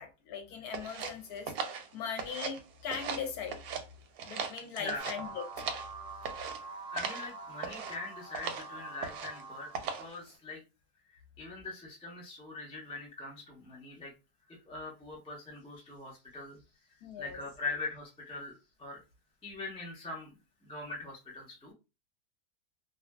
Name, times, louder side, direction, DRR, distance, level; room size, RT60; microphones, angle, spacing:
voice 1, 0.0-1.5 1.9-3.6 4.3-5.4 17.0-17.4, left 7 dB, 70° left, 1.0 m, -39 dB
sound 1, 0.7-2.6 2.9-3.8 4.2-5.9 6.2-6.6 7.0-7.3 7.6-8.0 8.3-8.7 9.0-9.4 9.7-10.2, right 6 dB, 70° right, 0.9 m, -38 dB
voice 2, 4.8-5.1 6.7-10.6 11.1-14.1 14.5-16.6 17.2-19.0 19.4-20.3 20.6-21.7, left 3 dB, 10° left, 0.3 m, -42 dB
sound 2, 5.0-10.1, right 3 dB, 25° left, 0.7 m, -45 dB
2.6 x 2.6 x 2.2 m
omnidirectional pair, 1.8 m